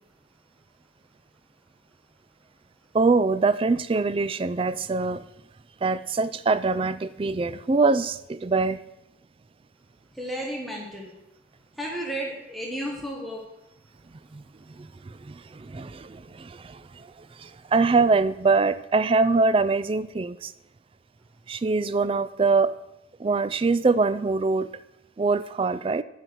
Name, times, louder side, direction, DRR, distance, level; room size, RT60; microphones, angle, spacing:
voice 1, 2.9-5.2 5.8-8.8 14.3-14.4 14.8-17.1 17.4-20.5 21.5-22.7 23.2-24.7 25.2-26.0, right 4 dB, 25° right, 14 dB, 0.3 m, -23 dB
voice 2, 10.2-11.1 11.8-13.4, right 1 dB, ahead, -2 dB, 1.4 m, -33 dB
11.5 x 9.1 x 4.6 m, 0.89 s
head